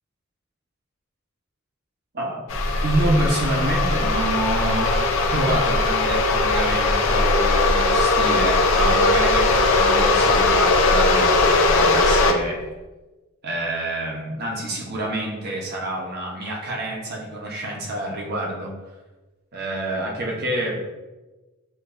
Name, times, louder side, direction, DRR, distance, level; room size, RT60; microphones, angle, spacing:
voice 1, 2.1-2.5 2.8-5.0 5.3-12.6 13.4-18.8 19.5-20.8, right 1 dB, 55° right, -2 dB, 1.1 m, -27 dB
sound 1, 2.5-12.3, left 2 dB, 70° left, 0.6 m, -19 dB
7.5 x 2.6 x 2.6 m, 1.2 s
head